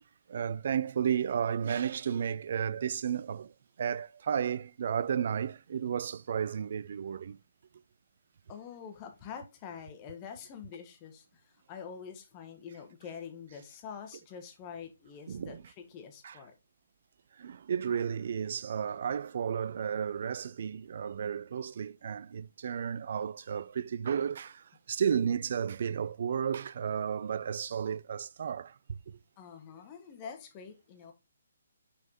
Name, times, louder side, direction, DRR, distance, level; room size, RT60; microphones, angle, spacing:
voice 1, 0.3-3.5 3.8-7.4 15.3-15.6 16.2-16.4 17.4-28.7, right 8 dB, 50° right, 0.4 m, -33 dB
voice 2, 8.5-16.5 29.4-31.1, left 7 dB, 25° left, 1.4 m, -46 dB
6.2 x 4.2 x 4.1 m
figure-of-eight pair, 135°, 0 cm